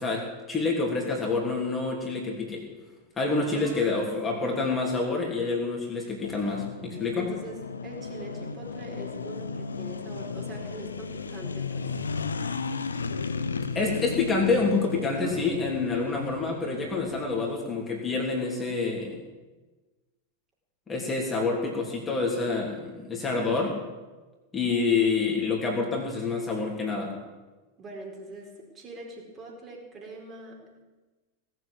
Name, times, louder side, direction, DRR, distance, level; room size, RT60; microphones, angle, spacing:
voice 1, 0.0-2.7 3.2-7.3 13.7-19.2 20.9-23.7 24.5-27.1, left 4 dB, 15° left, -1 dB, 3.2 m, -27 dB
voice 2, 3.4-4.7 7.2-12.0 15.1-15.5 23.2-23.7 27.8-30.8, right 2 dB, 25° right, -1 dB, 4.4 m, -43 dB
sound 1, 6.2-17.6, left 5 dB, 75° left, 0.8 m, -35 dB
18.5 x 8.0 x 8.5 m, 1.2 s
figure-of-eight pair, 90°, 0 cm